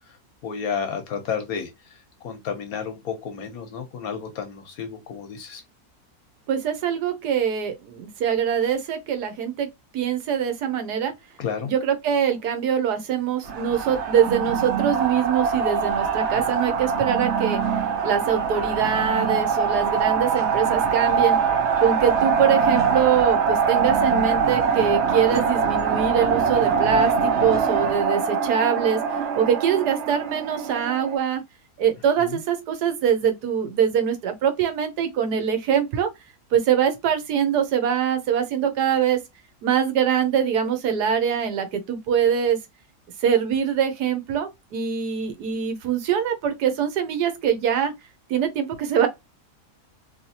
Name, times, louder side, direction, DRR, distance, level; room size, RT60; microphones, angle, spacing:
voice 1, 0.4-1.7 2.2-5.6 11.4-11.7 21.1-21.2 32.2-32.4, left 7 dB, 70° left, 1.3 m, -31 dB
voice 2, 6.5-9.7 9.9-11.1 11.6-17.6 18.0-21.4 21.8-31.4 31.8-36.1 36.5-39.2 39.6-42.6 43.2-47.9 48.3-49.1, right 8 dB, 85° right, 1.4 m, -23 dB
sound 1, 13.5-31.2, right 6 dB, 60° right, 0.8 m, -23 dB
3.2 x 3.2 x 2.7 m
omnidirectional pair, 1.7 m